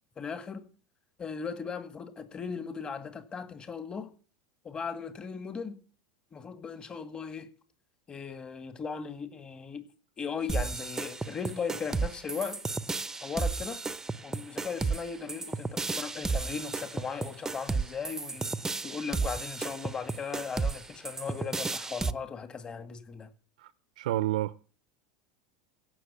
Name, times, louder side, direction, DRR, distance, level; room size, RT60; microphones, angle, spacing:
voice 1, 0.2-0.7 1.2-4.1 4.6-5.8 6.3-7.5 8.1-9.9 10.2-12.6 13.2-13.8 14.2-23.3, left 6 dB, 25° left, 2.1 m, -37 dB
sound 1, 10.5-22.1, right 4 dB, 10° right, 0.7 m, -33 dB
voice 2, 24.0-24.6, right 15 dB, 85° right, 0.6 m, -29 dB
16.5 x 6.5 x 8.3 m
supercardioid pair, 115°, 4 cm